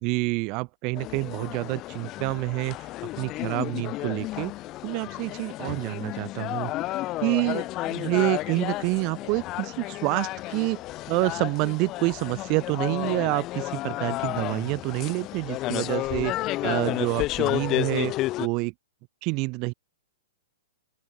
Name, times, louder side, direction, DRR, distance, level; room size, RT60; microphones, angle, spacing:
voice 1, 0.0-2.9 3.2-4.5 4.8-6.7 7.2-10.8 11.1-16.3 16.6-18.1 18.4-18.7 19.2-19.7, right 28 dB, 40° right, 3.6 m, -27 dB
sound 1, 0.9-18.5, left 17 dB, 35° left, 0.6 m, -31 dB
open air
hypercardioid pair, 120°, 0 cm